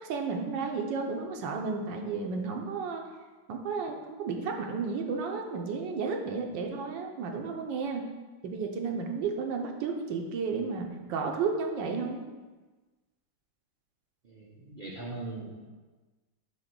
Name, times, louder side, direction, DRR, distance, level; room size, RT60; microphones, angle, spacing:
voice 1, 0.0-3.0 3.5-8.0 8.4-12.2, right 4 dB, 80° right, 2 dB, 1.4 m, -32 dB
voice 2, 14.2-15.7, right 2 dB, 60° right, -4 dB, 0.5 m, -40 dB
7.0 x 3.0 x 5.9 m, 1.3 s
omnidirectional pair, 2.0 m